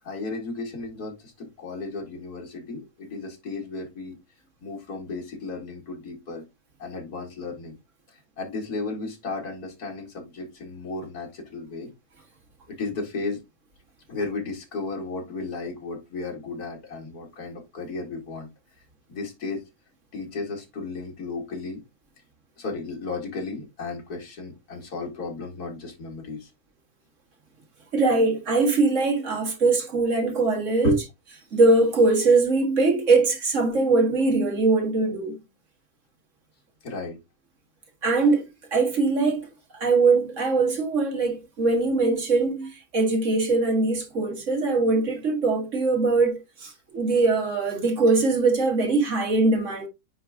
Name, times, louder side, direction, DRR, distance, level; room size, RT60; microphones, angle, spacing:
voice 1, 0.0-4.2 4.6-6.4 6.8-7.8 8.1-11.9 12.7-13.4 14.1-18.5 19.1-19.6 20.1-21.8 22.6-26.5 30.8-31.0 36.8-37.2, left 3 dB, 85° left, 2.6 m, -34 dB
voice 2, 27.9-30.9 31.5-35.4 38.0-39.5 39.7-49.9, right 3 dB, 55° right, 2.0 m, -22 dB
9.4 x 3.5 x 3.7 m
omnidirectional pair, 1.6 m